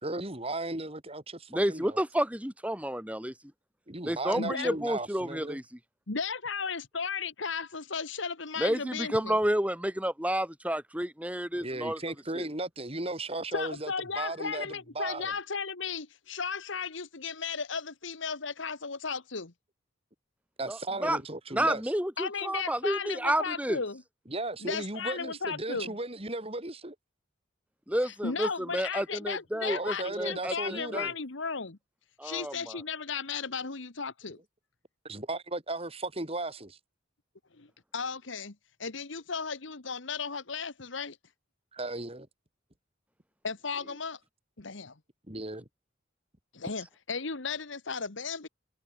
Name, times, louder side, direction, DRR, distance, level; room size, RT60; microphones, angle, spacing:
voice 1, 0.0-2.0 3.9-5.6 11.5-15.3 20.6-21.9 24.3-27.0 29.7-31.1 35.0-36.8 41.7-42.3 45.3-45.7, right 2 dB, 30° right, 3.6 m, -36 dB
voice 2, 1.5-3.3 4.0-5.6 8.6-12.0 12.3-12.5 20.7-21.2 21.5-23.8 27.9-31.1 32.2-32.8, right 1 dB, 5° right, 4.3 m, -30 dB
voice 3, 4.3-4.7 6.1-9.4 13.5-19.5 22.2-24.0 24.6-25.9 28.0-31.8 32.2-34.4 37.6-37.7 37.9-38.5 38.8-41.2 43.4-44.2 44.6-44.9 46.5-48.5, left 5 dB, 70° left, 1.5 m, -35 dB
head